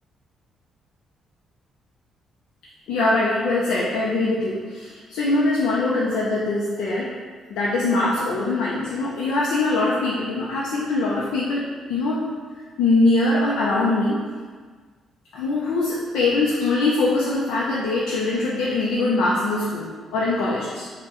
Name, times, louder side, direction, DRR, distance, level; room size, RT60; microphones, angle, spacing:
voice 1, 2.9-7.1 7.5-12.3 12.8-14.2 15.3-20.9, left 2 dB, 85° left, -5 dB, 0.4 m, -22 dB
4.3 x 2.1 x 2.9 m, 1.5 s
cardioid pair, 90°, 0 cm